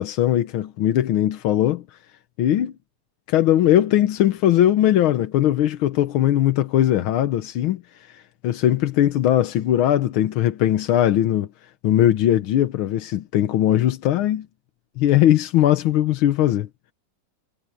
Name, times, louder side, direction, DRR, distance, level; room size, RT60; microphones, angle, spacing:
voice 1, 0.0-1.8 2.4-2.7 3.3-11.5 11.8-14.5 15.0-16.7, left 12 dB, 90° left, 1.8 m, -20 dB
omnidirectional pair, 2.2 m